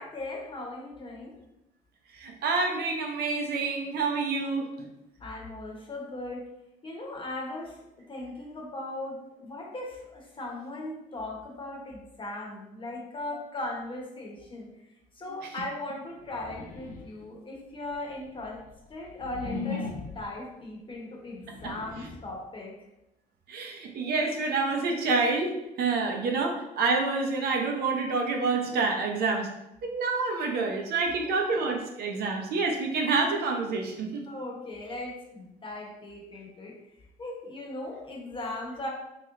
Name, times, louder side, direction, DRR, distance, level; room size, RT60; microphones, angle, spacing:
voice 1, 0.0-1.3 5.2-6.4 6.8-7.8 8.1-14.7 15.1-18.6 18.9-22.7 31.0-31.3 34.3-36.8 37.2-38.9, left 2 dB, 30° left, -1 dB, 1.0 m, -38 dB
voice 2, 2.1-4.9 23.5-29.5 29.8-34.2, right 4 dB, 70° right, 2 dB, 0.7 m, -28 dB
sound 1, 16.2-17.3 17.9-20.4 21.3-22.4, left 4 dB, 55° left, 0.8 m, -38 dB
3.1 x 3.0 x 3.7 m, 0.91 s
cardioid pair, 110°, 17 cm